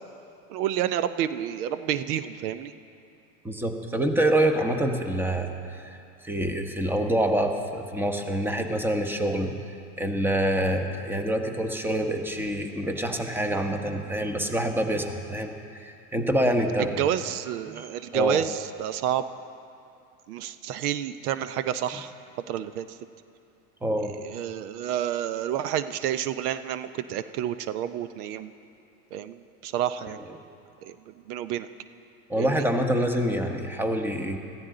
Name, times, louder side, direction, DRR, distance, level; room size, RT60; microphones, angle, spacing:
voice 1, 0.5-2.7 17.0-19.2 20.3-22.1 22.5-22.9 24.2-28.5 29.1-30.2 30.8-31.7 32.4-32.6, right 10 dB, 75° right, 12 dB, 0.7 m, -29 dB
voice 2, 3.4-6.0 6.2-9.5 10.0-17.0 17.7-17.9 18.1-18.4 23.8-24.1 30.1-30.2 32.3-34.4, right 1 dB, 5° right, 5 dB, 1.1 m, -26 dB
21.0 x 14.5 x 3.9 m, 2.6 s
supercardioid pair, 110°, 45 cm